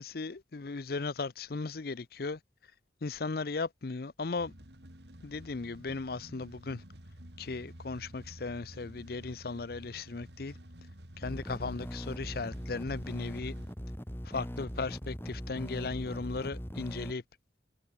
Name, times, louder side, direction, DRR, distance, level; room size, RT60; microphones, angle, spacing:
voice 1, 0.0-2.4 3.0-4.5 5.2-6.8 7.4-10.5 11.2-13.5 14.3-17.2, left 4 dB, 55° left, 0.6 m, -37 dB
sound 1, 4.4-13.7, equal, 75° right, 5.6 m, -51 dB
sound 2, 11.2-17.1, equal, 15° left, 4.5 m, -40 dB
head